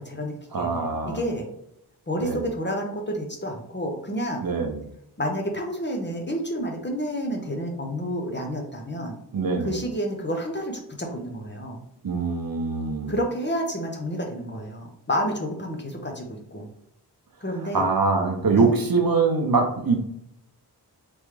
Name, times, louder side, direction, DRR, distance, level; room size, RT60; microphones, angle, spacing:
voice 1, 0.0-1.5 2.1-4.4 5.2-9.2 9.6-11.8 13.1-16.7 17.4-17.8 18.6-18.7, equal, 25° left, 1 dB, 0.7 m, -30 dB
voice 2, 0.5-1.2 2.2-2.4 4.4-4.8 9.3-9.8 12.0-13.1 17.7-20.0, right 4 dB, 55° right, 3 dB, 0.7 m, -23 dB
3.5 x 3.2 x 3.2 m, 0.75 s
wide cardioid pair, 90°, 42 cm